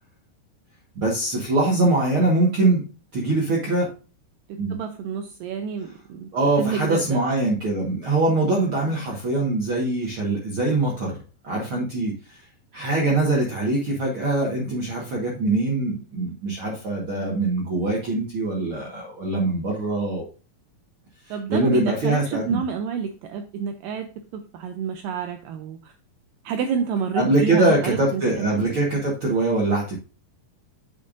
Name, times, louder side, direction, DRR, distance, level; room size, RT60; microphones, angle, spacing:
voice 1, 0.9-2.8 3.1-3.9 4.6-4.7 6.3-11.2 11.4-12.4 12.7-20.3 21.2-22.6 27.1-30.0, right 2 dB, 65° right, -2 dB, 1.3 m, -23 dB
voice 2, 4.7-6.3 6.6-7.2 21.3-25.9 26.5-28.6, right 7 dB, 85° right, 6 dB, 2.0 m, -29 dB
8.7 x 6.7 x 2.5 m, 0.35 s
omnidirectional pair, 4.5 m